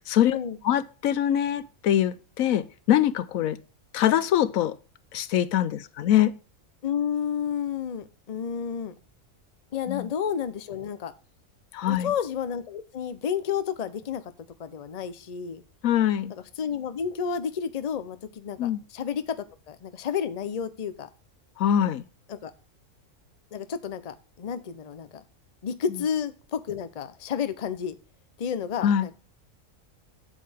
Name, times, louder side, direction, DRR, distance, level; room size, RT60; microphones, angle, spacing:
voice 1, 0.1-0.4 0.6-3.6 3.9-4.7 5.1-6.4 9.9-10.1 11.7-12.1 15.8-16.3 18.6-18.8 21.6-22.0 28.8-29.1, left 11 dB, 80° left, 1.1 m, -23 dB
voice 2, 6.8-8.9 9.7-11.1 11.9-14.2 14.6-15.6 16.3-21.1 22.3-22.5 23.5-25.2 25.6-27.9 28.4-29.1, left 7 dB, 40° left, 0.6 m, -31 dB
8.5 x 7.6 x 3.4 m
omnidirectional pair, 1.4 m